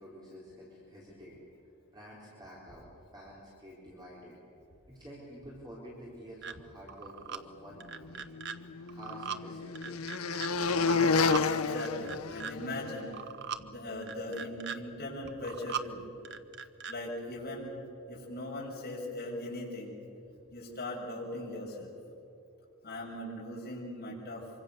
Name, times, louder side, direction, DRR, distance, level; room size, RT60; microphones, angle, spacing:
voice 1, 0.0-1.4 1.9-4.4 4.9-8.3 8.9-10.0, equal, 20° right, -5 dB, 4.6 m, -49 dB
sound 1, 6.4-6.5 6.9-7.4 7.8-8.6 8.9-9.4 9.8-10.5 10.9-11.5 11.8-12.5 13.0-13.6 14.0-14.8 15.3-15.9 16.3-16.9, right 7 dB, 55° right, 1.0 m, -39 dB
sound 2, 8.3-12.9, left 4 dB, 80° left, 0.8 m, -30 dB
voice 2, 11.0-13.1 13.6-16.1 16.9-17.7 18.1-20.0 20.5-21.9 22.8-24.5, left 1 dB, 45° left, -3 dB, 6.9 m, -40 dB
26.0 x 25.0 x 6.8 m, 2.7 s
head